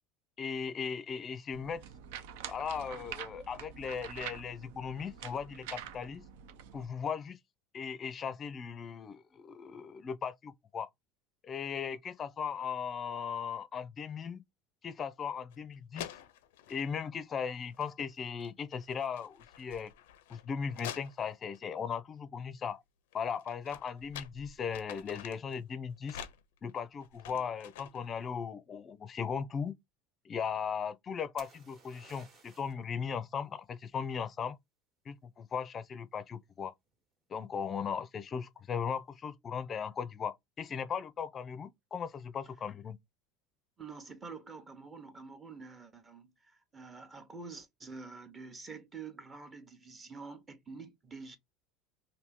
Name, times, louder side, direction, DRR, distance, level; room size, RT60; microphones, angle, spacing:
voice 1, 0.4-1.8 2.5-6.2 6.7-7.4 7.7-10.9 11.4-14.4 14.8-16.1 16.7-19.9 20.3-22.8 23.1-26.2 26.6-29.7 30.2-34.6 35.1-36.7 37.3-43.0, left 6 dB, 30° left, 0.5 m, -37 dB
sound 1, 1.5-6.9, right 9 dB, 80° right, 0.5 m, -46 dB
sound 2, 15.5-15.6 15.9-16.9 17.7-18.1 18.4-21.6 23.1-25.6 26.0-28.1, left 10 dB, 90° left, 0.5 m, -48 dB
sound 3, 31.4-32.8 36.5-37.0, right 4 dB, 40° right, 1.2 m, -57 dB
voice 2, 43.8-51.4, right 4 dB, 20° right, 0.9 m, -47 dB
2.7 x 2.7 x 3.5 m
supercardioid pair, 120°, 0 cm